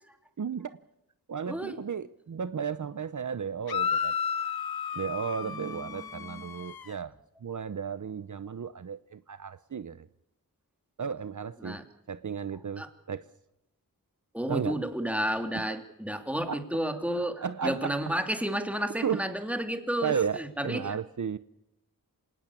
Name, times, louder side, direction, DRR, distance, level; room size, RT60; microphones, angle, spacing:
voice 1, 0.4-0.7 1.3-4.1 4.9-7.1 7.4-10.1 11.0-11.8 12.1-13.2 14.5-14.8 15.5-15.6 16.5-16.6 17.4-17.9 19.0-19.2 20.0-21.4, right 7 dB, 55° right, 14 dB, 0.8 m, -34 dB
voice 2, 1.5-1.8 5.4-6.5 11.6-11.8 12.8-12.9 14.3-21.0, right 1 dB, 5° right, 7 dB, 2.8 m, -32 dB
sound 1, 3.7-6.9, left 7 dB, 80° left, 1.0 m, -32 dB
27.0 x 18.5 x 8.5 m, 0.87 s
wide cardioid pair, 75°, 36 cm